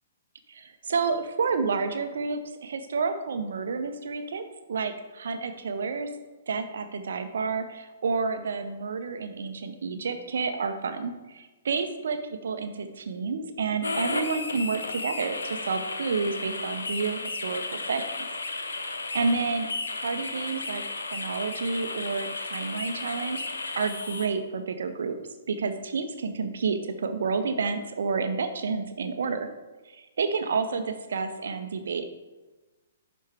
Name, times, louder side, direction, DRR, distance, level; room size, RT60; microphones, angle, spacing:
voice 1, 0.5-4.4 4.7-6.1 6.5-12.2 12.4-18.1 18.7-19.7 20.0-25.2 25.5-29.5 29.9-32.1, right 4 dB, 65° right, 8 dB, 0.7 m, -30 dB
sound 1, 13.8-24.3, left 3 dB, 75° left, 0.8 m, -34 dB
11.0 x 4.3 x 3.4 m, 1.2 s
figure-of-eight pair, 120°, 0 cm